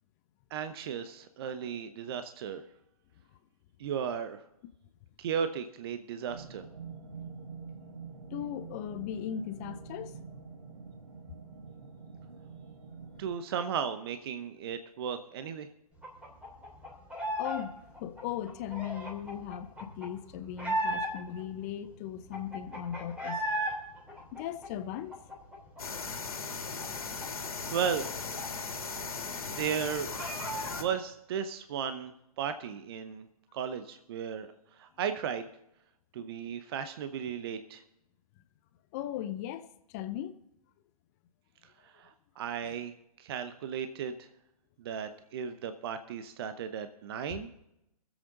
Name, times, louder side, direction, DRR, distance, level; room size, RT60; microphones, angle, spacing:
voice 1, 0.5-2.6 3.8-4.4 5.2-6.6 13.2-15.7 27.7-28.1 29.4-30.1 30.8-33.3 33.5-34.5 34.8-35.5 36.1-37.8 41.8-42.9 43.2-44.2 44.8-47.5, right 7 dB, 40° right, 0.8 m, -35 dB
sound 1, 6.2-13.3, right 5 dB, 65° right, 1.8 m, -46 dB
voice 2, 8.3-10.2 17.4-23.4 24.3-25.2 36.2-36.3 38.9-40.4 42.6-42.7 47.3-47.4, left 10 dB, 25° left, 0.6 m, -38 dB
sound 2, 16.0-17.6 17.9-21.4 21.8-21.9 22.1-23.7 24.1-25.8 26.1-26.2 26.5-29.0 29.3-29.4 29.7-30.9, right 1 dB, 5° right, 2.9 m, -36 dB
sound 3, 25.8-30.8, left 5 dB, 70° left, 2.2 m, -38 dB
23.0 x 8.0 x 3.9 m
figure-of-eight pair, 130°, 19 cm